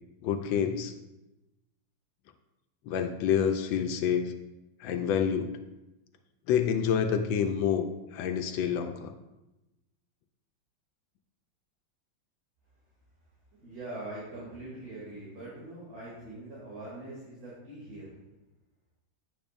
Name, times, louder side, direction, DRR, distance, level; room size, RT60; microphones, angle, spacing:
voice 1, 0.2-0.9 2.9-4.3 4.8-5.5 6.5-9.1, left 8 dB, 85° left, 6 dB, 1.4 m, -28 dB
voice 2, 13.5-18.2, right 2 dB, 50° right, -8 dB, 3.1 m, -43 dB
10.0 x 8.8 x 2.6 m, 0.99 s
omnidirectional pair, 2.1 m